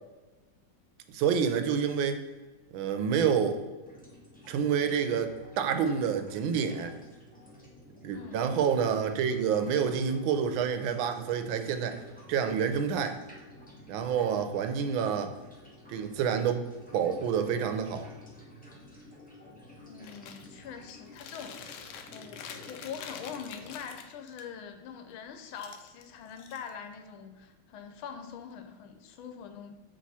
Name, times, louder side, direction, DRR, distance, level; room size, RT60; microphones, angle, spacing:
voice 1, 1.1-2.2 2.7-3.6 4.5-6.9 8.0-12.0 12.3-13.2 13.9-15.3 15.9-16.6 16.9-18.1, right 7 dB, 80° right, 8 dB, 1.4 m, -28 dB
sound 1, 3.8-23.8, left 1 dB, 10° left, 0.6 m, -52 dB
voice 2, 19.8-21.8 22.1-29.7, left 7 dB, 90° left, 6 dB, 1.5 m, -43 dB
Chewing mastication, 20.0-20.5 20.9-24.4 25.5-27.0, left 7 dB, 70° left, 1.0 m, -46 dB
7.6 x 3.3 x 4.1 m, 1.2 s
omnidirectional pair, 2.2 m